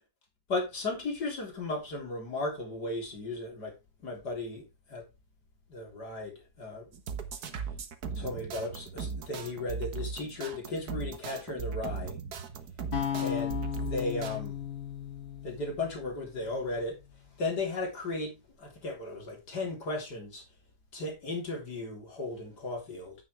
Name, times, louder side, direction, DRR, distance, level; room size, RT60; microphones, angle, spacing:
voice 1, 0.5-3.8 4.0-5.0 5.7-6.9 8.2-12.2 13.2-14.6 15.4-17.0 17.4-18.3 18.6-20.4 20.9-23.2, left 2 dB, 85° left, 4.0 m, -35 dB
sound 1, 6.9-14.4, right 5 dB, 70° right, 1.7 m, -38 dB
sound 2, 12.9-17.1, left 10 dB, 65° left, 2.9 m, -36 dB
9.8 x 8.1 x 3.3 m
omnidirectional pair, 1.7 m